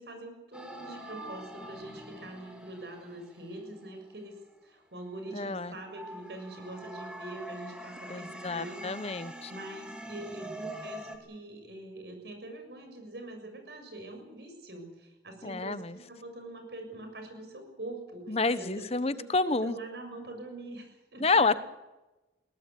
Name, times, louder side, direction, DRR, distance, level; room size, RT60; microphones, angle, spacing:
voice 1, 0.0-4.4 4.6-21.6, right 2 dB, 70° right, 5 dB, 6.9 m, -44 dB
sound 1, 0.5-4.6 5.1-11.2, right 1 dB, 5° right, 2.7 m, -45 dB
voice 2, 5.3-5.7 8.1-9.5 15.4-16.0 18.3-19.8 21.2-21.6, left 3 dB, 35° left, 14 dB, 1.0 m, -29 dB
22.0 x 18.0 x 8.3 m, 1.1 s
head